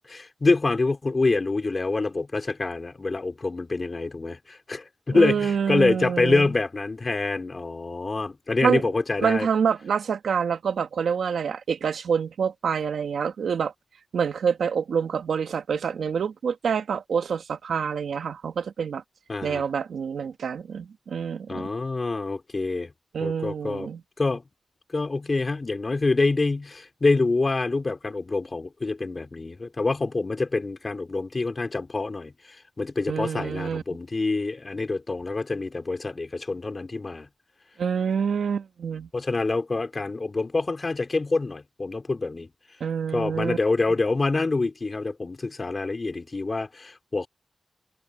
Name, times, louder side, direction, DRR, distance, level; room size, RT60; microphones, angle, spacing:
voice 1, 0.1-9.5 19.3-19.6 21.5-22.9 23.2-23.9 24.2-24.4 24.9-37.3 39.1-42.5 43.1-47.3, left 3 dB, 45° left, 3.8 m, -26 dB
voice 2, 5.1-6.5 8.6-8.8 9.2-13.7 14.1-19.0 19.4-21.7 23.1-24.0 33.1-33.8 37.8-39.1 42.8-43.6, right 6 dB, 85° right, 2.1 m, -26 dB
cardioid pair, 40°, 0 cm